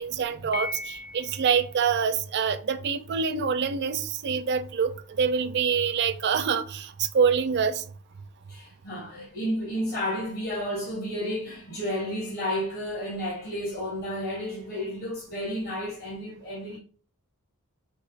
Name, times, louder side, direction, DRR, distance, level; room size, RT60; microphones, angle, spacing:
voice 1, 0.0-7.8, right 6 dB, 50° right, 0.4 m, -26 dB
Piano, 0.5-1.7, left 3 dB, 30° left, 0.4 m, -36 dB
voice 2, 8.5-16.8, equal, 45° left, 1.8 m, -32 dB
5.2 x 3.5 x 2.4 m
head